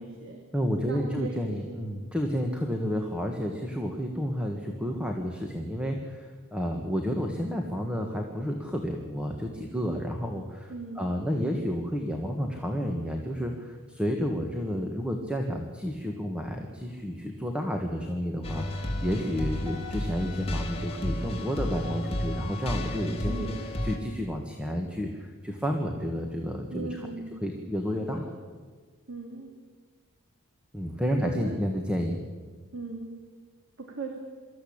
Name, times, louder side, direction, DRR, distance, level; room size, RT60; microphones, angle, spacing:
voice 1, 0.0-0.4 0.9-1.9 10.7-11.1 23.3-23.7 26.7-27.3 28.1-28.2 29.1-29.5 30.9-31.6 32.7-33.1 33.8-34.2, right 3 dB, 60° right, 1 dB, 2.9 m, -39 dB
voice 2, 0.5-23.5 23.8-27.0 27.4-28.3 30.7-32.2, equal, 5° right, 2 dB, 1.7 m, -31 dB
sound 1, 18.4-24.0, left 1 dB, 25° left, 3.1 m, -32 dB
24.5 x 14.0 x 8.8 m, 1.5 s
head